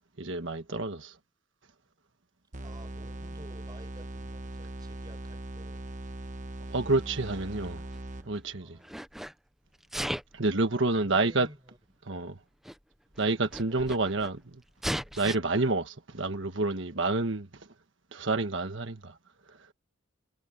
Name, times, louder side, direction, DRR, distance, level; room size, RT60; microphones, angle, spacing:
voice 1, 0.2-1.0 6.7-7.8 8.3-8.8 10.3-11.5 12.1-12.3 13.2-14.6 15.2-17.5 18.1-19.1, right 3 dB, 70° right, 1.4 m, -28 dB
sound 1, 2.5-8.6, right 1 dB, 40° right, 1.3 m, -40 dB
voice 2, 2.6-5.9 6.7-6.9 7.5-7.6 8.6-9.0 10.7-11.8 12.1-12.4 13.5-13.9, right 1 dB, 20° right, 5.6 m, -53 dB
Sneeze, 7.3-8.4 8.8-9.3 9.8-10.4 11.4-11.5 12.4-12.5 12.6-12.8 13.1-14.3 14.8-15.4, equal, ahead, 0.8 m, -36 dB
head